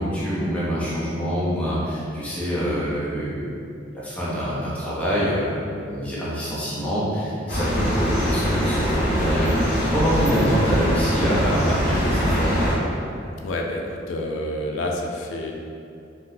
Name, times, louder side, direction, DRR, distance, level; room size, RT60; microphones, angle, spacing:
voice 1, 0.0-3.5 3.9-12.6, equal, 5° left, -9 dB, 0.7 m, -25 dB
sound 1, 7.5-12.7, equal, 50° left, 1.5 m, -23 dB
voice 2, 13.4-15.5, left 1 dB, 85° left, 1 dB, 0.3 m, -28 dB
3.8 x 2.0 x 2.6 m, 2.6 s
head